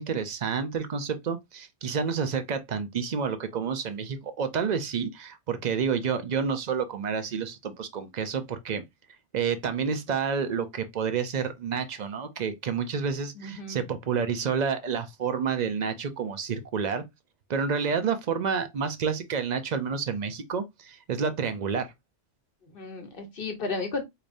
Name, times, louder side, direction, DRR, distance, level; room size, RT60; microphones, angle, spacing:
voice 1, 0.0-8.8 9.3-17.0 17.5-21.9, right 6 dB, 45° right, 0.6 m, -29 dB
voice 2, 13.3-13.9 22.6-24.0, left 3 dB, 50° left, 1.2 m, -34 dB
4.9 x 2.8 x 2.5 m
omnidirectional pair, 1.2 m